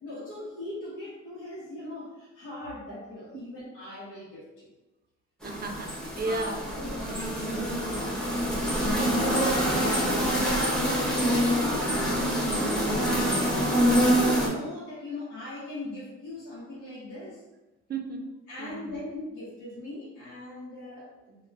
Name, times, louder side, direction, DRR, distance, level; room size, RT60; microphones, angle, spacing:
voice 1, 0.0-4.7 6.2-10.4 10.8-17.4 18.5-21.5, left 1 dB, 85° left, -8 dB, 0.8 m, -40 dB
sound 1, 5.4-14.5, equal, ahead, 0.7 m, -26 dB
voice 2, 5.4-6.6 17.9-18.3 18.6-19.0, right 3 dB, 35° right, 4 dB, 0.4 m, -34 dB
2.2 x 2.1 x 3.2 m, 1.1 s
cardioid pair, 90°, 30 cm